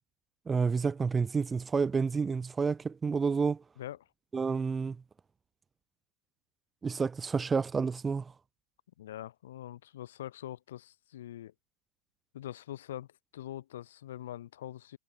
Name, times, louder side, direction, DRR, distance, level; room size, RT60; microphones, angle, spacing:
voice 1, 0.5-3.6 4.3-5.0 6.8-8.3, right 5 dB, 15° right, 0.6 m, -29 dB
voice 2, 9.0-11.5 12.3-13.1 13.3-15.0, left 12 dB, 60° left, 1.5 m, -43 dB
figure-of-eight pair, 90°, 0 cm